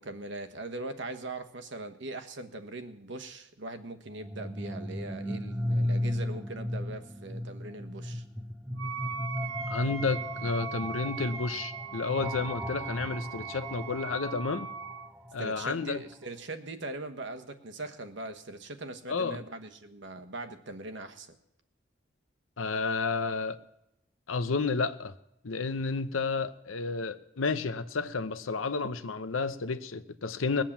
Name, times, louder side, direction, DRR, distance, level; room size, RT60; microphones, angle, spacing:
voice 1, 0.0-8.2 15.4-21.3, right 2 dB, 60° right, 1.2 m, -41 dB
sound 1, 4.1-15.9, left 1 dB, 5° right, 0.6 m, -36 dB
Wind instrument woodwind instrument, 8.8-15.1, right 7 dB, 85° right, 0.7 m, -39 dB
voice 2, 9.7-14.7 15.3-16.0 19.1-19.4 22.6-23.6 24.3-25.2 25.4-30.6, left 4 dB, 85° left, 0.8 m, -31 dB
20.0 x 7.5 x 7.3 m
head